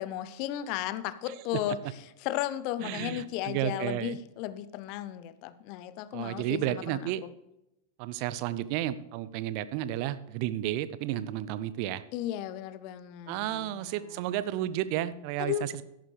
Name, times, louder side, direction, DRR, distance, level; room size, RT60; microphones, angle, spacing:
voice 1, 0.0-1.8 2.2-7.1 12.1-14.0 15.4-15.8, left 13 dB, 45° left, 15 dB, 0.7 m, -35 dB
voice 2, 1.3-1.6 2.8-4.2 6.1-7.2 8.0-12.0 13.3-15.8, right 13 dB, 45° right, 15 dB, 0.6 m, -32 dB
14.0 x 11.0 x 3.3 m, 0.88 s
figure-of-eight pair, 90°, 0 cm